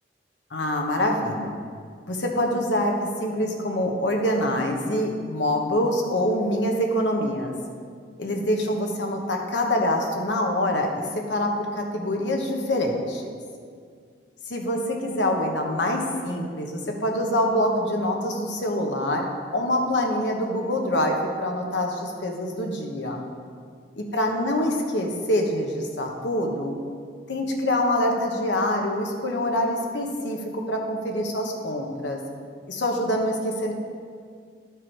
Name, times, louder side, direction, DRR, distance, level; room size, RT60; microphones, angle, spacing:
voice 1, 0.5-1.6 2.1-7.5 8.2-13.2 14.5-19.3 19.5-23.2 24.1-26.8 27.3-32.2 32.7-33.7, left 1 dB, 75° left, 1 dB, 1.1 m, -25 dB
12.0 x 4.7 x 4.6 m, 2.1 s
head